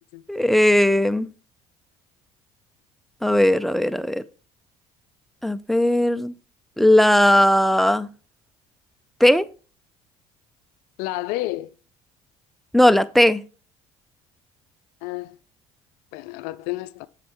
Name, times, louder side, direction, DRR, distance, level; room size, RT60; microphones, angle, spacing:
voice 1, 0.3-1.3 3.2-4.2 5.4-6.3 6.8-8.1 9.2-9.4 12.7-13.4, left 1 dB, ahead, 0.5 m, -17 dB
voice 2, 11.0-11.7 15.0-15.4 16.1-17.1, left 17 dB, 80° left, 0.4 m, -30 dB
8.2 x 6.4 x 3.0 m
supercardioid pair, 85°, 16 cm